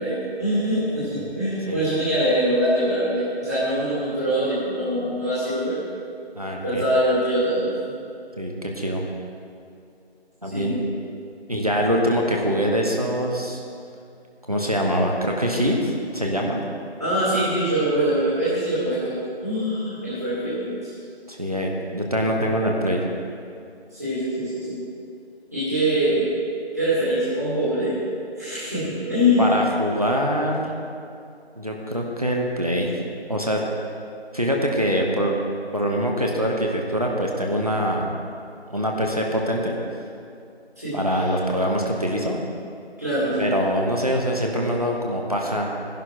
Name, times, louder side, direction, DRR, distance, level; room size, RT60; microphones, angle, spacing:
voice 1, 0.0-5.8 6.6-7.9 10.5-10.9 17.0-20.9 23.9-24.8 25.5-26.3 26.7-28.0 28.4-29.5 40.8-41.0 43.0-43.5, equal, 15° right, -12 dB, 2.3 m, -23 dB
voice 2, 6.3-6.8 8.4-9.0 10.4-10.8 11.5-13.6 14.5-16.6 21.3-23.0 29.4-30.7 31.5-32.9 33.3-33.7 34.3-35.4 35.7-38.1 38.7-39.8 40.9-42.4 43.4-45.7, equal, 35° right, -1 dB, 1.1 m, -24 dB
14.0 x 11.0 x 4.5 m, 2.5 s
figure-of-eight pair, 180°, 32 cm